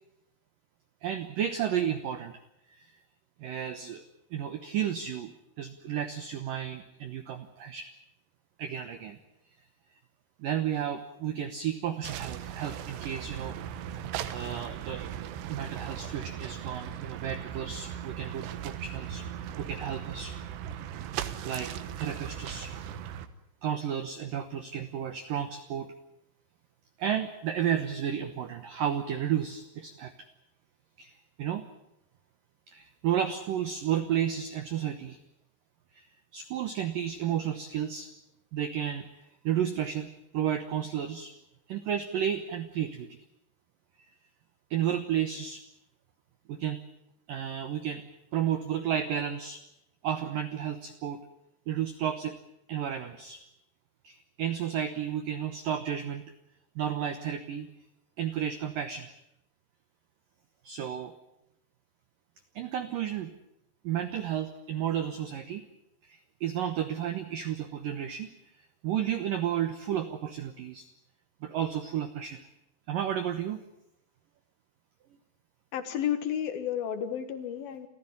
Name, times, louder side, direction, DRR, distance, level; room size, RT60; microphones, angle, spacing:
voice 1, 1.0-2.3 2.7-3.0 3.4-4.0 4.3-7.9 8.6-9.2 10.4-13.6 14.3-15.1 15.5-19.2 19.6-20.3 20.8-20.9 21.4-21.7 22.0-22.7 23.6-25.9 27.0-30.1 31.0-31.7 32.7-35.2 35.9-38.1 38.5-41.3 41.7-43.2 44.7-45.6 46.5-46.8 47.3-48.0 48.3-49.6 50.0-51.2 51.7-52.3 52.7-53.4 54.0-56.2 56.8-57.7 58.2-59.1 60.6-61.2 62.6-63.3 63.8-65.6 66.0-68.3 68.6-70.9 71.4-72.5 72.9-73.6, right 9 dB, 85° right, 9 dB, 1.9 m, -32 dB
sound 1, 12.0-23.3, right 10 dB, 70° right, 2.9 m, -38 dB
voice 2, 75.7-77.9, left 9 dB, 60° left, 9 dB, 2.8 m, -32 dB
28.5 x 14.5 x 9.9 m, 0.84 s
omnidirectional pair, 5.8 m